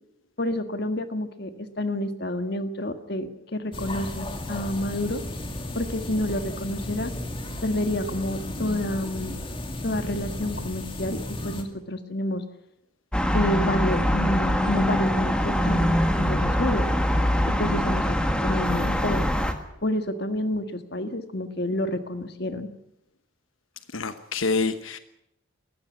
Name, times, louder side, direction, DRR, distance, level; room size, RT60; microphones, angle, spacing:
voice 1, 0.4-5.2 5.7-7.1 7.6-9.4 9.8-12.4 13.3-16.9 17.6-19.3 19.8-22.7, left 1 dB, 50° left, 9 dB, 1.7 m, -29 dB
sound 1, 3.7-11.6, left 1 dB, 25° left, 2.2 m, -34 dB
sound 2, 13.1-19.5, equal, 5° left, 1.6 m, -23 dB
voice 2, 23.9-25.0, left 4 dB, 85° left, 10 dB, 1.1 m, -26 dB
20.0 x 15.0 x 9.6 m, 0.80 s
head